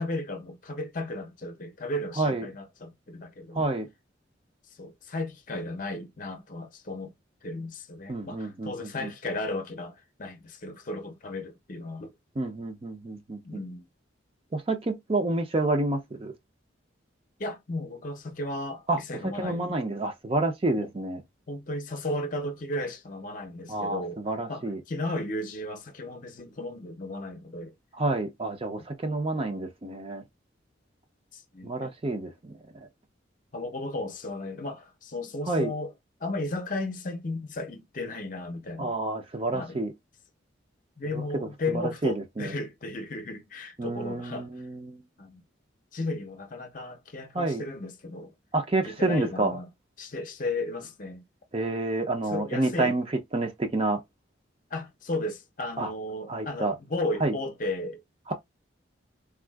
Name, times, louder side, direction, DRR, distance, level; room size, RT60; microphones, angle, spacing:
voice 1, 0.0-3.6 4.8-7.1 7.4-12.1 13.4-13.9 17.4-19.8 20.8-20.9 21.5-24.2 24.5-27.7 31.3-31.9 33.5-35.9 36.2-39.0 39.5-39.8 41.0-44.5 45.2-45.4 45.9-48.3 48.8-49.7 50.0-51.2 52.3-53.0 54.7-58.0, left 2 dB, 45° left, 0.6 m, -35 dB
voice 2, 3.5-3.9 8.1-9.1 12.4-13.4 14.5-16.3 18.9-19.0 19.4-21.2 23.7-24.8 28.0-30.2 31.6-32.6 35.5-35.7 38.8-39.9 41.1-42.5 43.8-45.0 47.3-47.6 48.5-49.6 51.5-53.1 53.3-54.0 55.8-55.9 56.3-56.7 57.2-57.3 58.3-58.4, right 2 dB, 30° right, 0.5 m, -29 dB
3.5 x 2.3 x 2.3 m
head